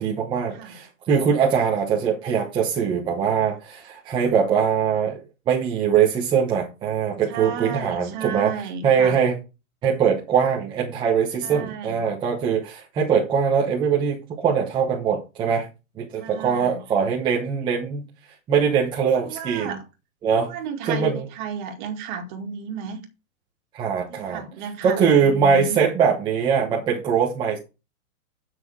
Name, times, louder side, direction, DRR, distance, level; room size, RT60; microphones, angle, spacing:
voice 1, 0.0-5.2 5.5-8.5 8.8-9.3 9.8-15.7 16.0-18.1 18.5-19.8 20.2-20.5 20.8-21.3 23.7-24.4 24.8-27.6, right 7 dB, 10° right, 1.0 m, -22 dB
voice 2, 7.3-9.2 11.4-12.0 16.2-16.8 19.1-19.8 20.3-23.0 24.1-25.8, right 6 dB, 35° right, 2.1 m, -33 dB
9.4 x 6.2 x 4.8 m
hypercardioid pair, 170°, 43 cm